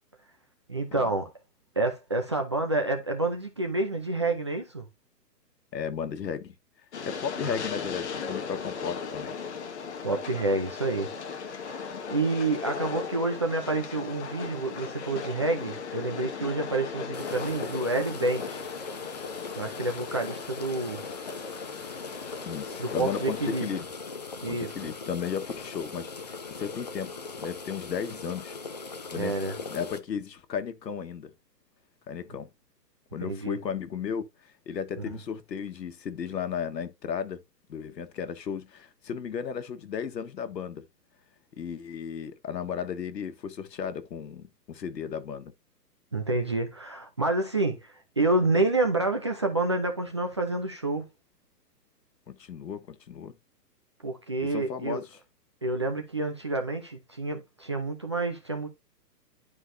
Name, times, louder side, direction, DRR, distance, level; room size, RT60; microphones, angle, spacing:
voice 1, 0.7-1.3 1.8-4.8 7.4-7.6 10.0-11.1 11.5-18.6 19.6-21.0 22.8-23.7 24.4-24.7 29.1-29.6 33.2-33.6 46.1-51.1 54.0-55.0 55.6-58.7, right 2 dB, 20° right, 0.6 m, -28 dB
voice 2, 5.7-6.6 7.0-9.3 22.4-23.8 24.4-28.6 29.1-29.4 29.7-31.3 32.1-32.5 33.1-37.4 37.7-40.9 41.6-45.5 52.3-53.4 54.5-55.1, left 7 dB, 90° left, 1.7 m, -35 dB
Train, 6.9-23.8, left 5 dB, 45° left, 1.7 m, -38 dB
sound 1, 17.1-30.0, left 4 dB, 25° left, 0.6 m, -40 dB
11.0 x 4.8 x 2.7 m
hypercardioid pair, 170°, 49 cm